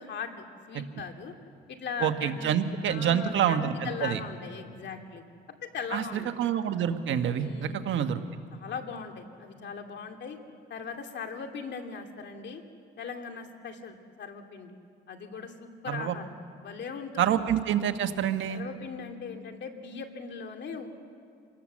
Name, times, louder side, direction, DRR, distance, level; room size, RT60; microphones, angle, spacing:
voice 1, 0.0-1.3 1.7-2.6 2.9-5.2 5.6-6.3 7.4-7.9 8.5-10.4 10.7-12.6 13.0-14.8 15.1-16.3 16.6-17.4 18.5-21.0, left 5 dB, 60° left, 4 dB, 2.4 m, -39 dB
voice 2, 2.0-4.2 5.9-8.2 15.9-16.2 17.2-18.6, right 9 dB, 75° right, 8 dB, 1.3 m, -27 dB
27.0 x 19.0 x 7.4 m, 2.2 s
cardioid pair, 90°, 20 cm